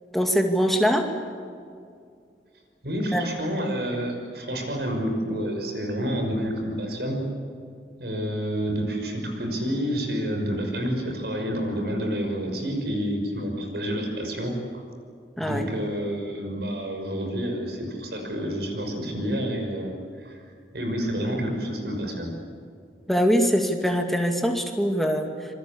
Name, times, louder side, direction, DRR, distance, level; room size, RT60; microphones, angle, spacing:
voice 1, 0.1-1.1 3.1-3.3 15.4-15.7 23.1-25.3, equal, ahead, 3 dB, 2.1 m, -23 dB
voice 2, 2.8-7.2 8.0-14.5 15.4-19.9 20.2-20.4 20.7-22.3, equal, 70° right, 3 dB, 5.9 m, -29 dB
26.5 x 23.0 x 8.6 m, 2.3 s
head